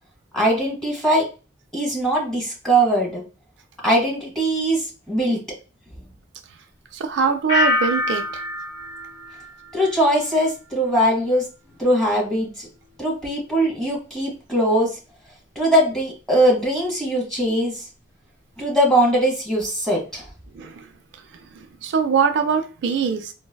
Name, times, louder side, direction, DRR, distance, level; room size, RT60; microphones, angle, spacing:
voice 1, 0.3-1.2 1.7-3.2 3.8-5.4 9.7-11.5 11.8-12.7 13.0-15.0 15.5-17.9 18.6-20.3, right 1 dB, 5° left, -3 dB, 1.1 m, -21 dB
voice 2, 6.9-8.4 20.5-20.9 21.3-23.3, right 6 dB, 70° right, 7 dB, 0.3 m, -23 dB
sound 1, 7.5-10.3 10.6-11.1, left 1 dB, 35° left, 1.5 m, -26 dB
3.9 x 2.0 x 2.2 m, 0.33 s
head